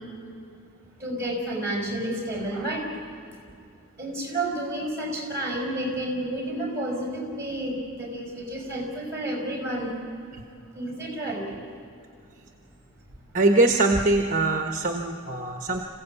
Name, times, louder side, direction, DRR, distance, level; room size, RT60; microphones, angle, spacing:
voice 1, 1.0-2.8 4.0-10.0 10.7-11.4, right 1 dB, 15° right, -1 dB, 5.7 m, -30 dB
voice 2, 13.3-15.9, right 2 dB, 35° right, 3 dB, 1.1 m, -22 dB
27.0 x 16.0 x 8.3 m, 2.4 s
head